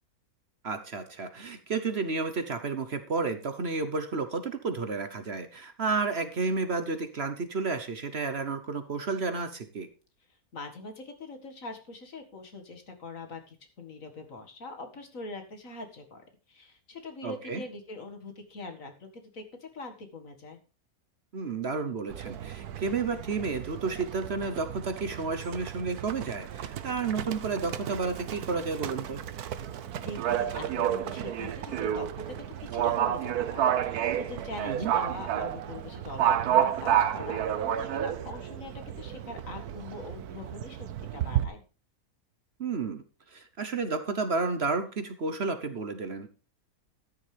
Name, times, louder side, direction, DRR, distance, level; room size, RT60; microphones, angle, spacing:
voice 1, 0.6-9.9 17.2-17.6 21.3-29.2 34.7-34.9 42.6-46.3, right 4 dB, 50° right, 10 dB, 1.1 m, -31 dB
voice 2, 10.5-20.6 29.7-41.6, left 3 dB, 60° left, 5 dB, 2.3 m, -43 dB
Livestock farm animals working animals, 22.1-41.4, right 10 dB, 85° right, 1.3 m, -31 dB
13.5 x 10.5 x 3.3 m, 0.34 s
omnidirectional pair, 1.6 m